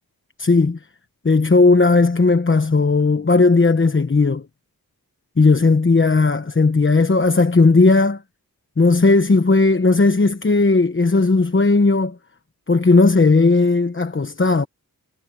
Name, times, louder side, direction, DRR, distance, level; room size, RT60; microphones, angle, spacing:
voice 1, 0.4-0.8 1.2-4.4 5.4-8.2 8.8-12.2 12.7-14.7, left 3 dB, 35° left, 1.1 m, -16 dB
wide cardioid pair, 90°, 36 cm